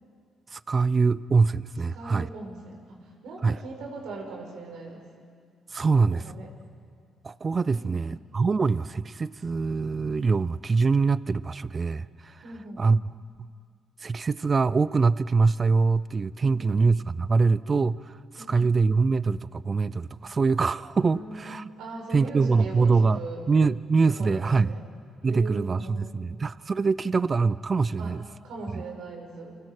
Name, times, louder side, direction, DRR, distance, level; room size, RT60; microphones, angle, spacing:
voice 1, 0.5-2.3 3.4-3.6 5.7-6.2 7.2-12.4 12.8-13.0 13.4-13.5 14.0-21.6 22.1-24.8 25.2-28.2 28.7-28.8, right 4 dB, 35° right, 18 dB, 0.5 m, -24 dB
voice 2, 1.9-5.0 6.0-6.5 7.7-8.0 12.4-12.8 16.4-16.8 18.4-18.7 21.1-23.4 24.2-24.8 25.2-26.4 28.0-28.1 28.4-29.5, right 3 dB, 85° right, 1 dB, 5.2 m, -40 dB
29.5 x 24.5 x 4.9 m, 2.1 s
cardioid pair, 90°, 0 cm